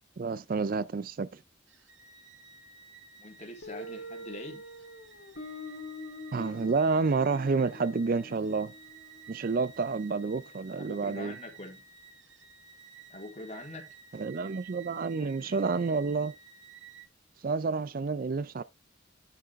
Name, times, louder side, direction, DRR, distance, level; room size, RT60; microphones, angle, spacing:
voice 1, 0.2-1.4 6.3-8.7 9.3-11.4 14.1-16.3 17.4-18.6, right 4 dB, 45° right, 0.4 m, -29 dB
sound 1, 1.7-17.0, right 6 dB, 75° right, 2.0 m, -53 dB
voice 2, 3.2-4.6 10.8-11.8 13.1-13.9, left 1 dB, 35° left, 3.3 m, -43 dB
Guitar, 3.6-10.3, left 1 dB, 85° left, 3.1 m, -45 dB
10.5 x 6.6 x 3.5 m
head